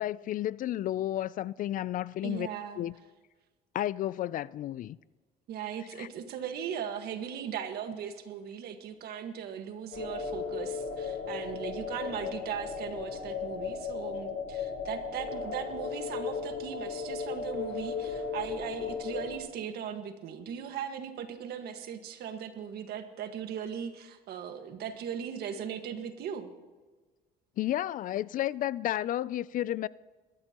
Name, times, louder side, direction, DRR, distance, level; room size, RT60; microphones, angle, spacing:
voice 1, 0.0-2.5 2.8-2.9 3.7-5.0 6.0-6.1 27.6-29.9, left 13 dB, 55° left, 0.4 m, -32 dB
voice 2, 2.2-2.9 5.5-26.5, right 8 dB, 70° right, 1.6 m, -38 dB
sound 1, 9.9-19.4, left 5 dB, 80° left, 3.7 m, -36 dB
20.5 x 13.0 x 3.0 m
cardioid pair, 110°, 17 cm